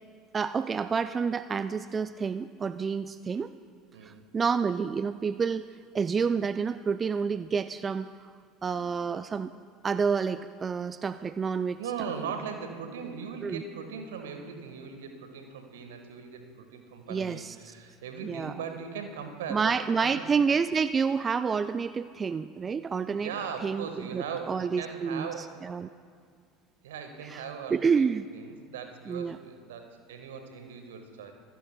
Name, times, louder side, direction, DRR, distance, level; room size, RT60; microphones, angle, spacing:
voice 1, 0.3-3.5 4.0-5.7 5.9-8.3 8.6-9.5 9.8-11.8 13.4-13.6 17.1-17.7 18.2-18.5 19.5-23.3 23.6-25.9 27.2-27.4 27.7-28.3 29.1-29.4, right 5 dB, 25° right, 13 dB, 0.3 m, -29 dB
voice 2, 3.9-4.2 11.8-20.2 23.1-25.6 26.8-28.0 28.3-31.3, right 6 dB, 70° right, 6 dB, 1.4 m, -39 dB
26.0 x 15.5 x 2.2 m, 2.2 s
figure-of-eight pair, 70°, 0 cm